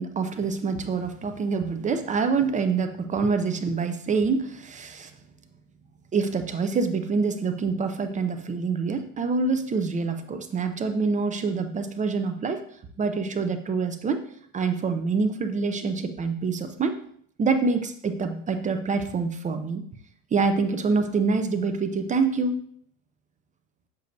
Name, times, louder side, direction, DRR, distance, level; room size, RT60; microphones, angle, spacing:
voice 1, 0.0-5.1 6.1-12.6 13.0-14.2 14.5-17.0 17.4-19.8 20.3-22.6, right 4 dB, 20° right, 8 dB, 0.5 m, -26 dB
8.0 x 6.7 x 2.6 m, 0.62 s
supercardioid pair, 115°, 44 cm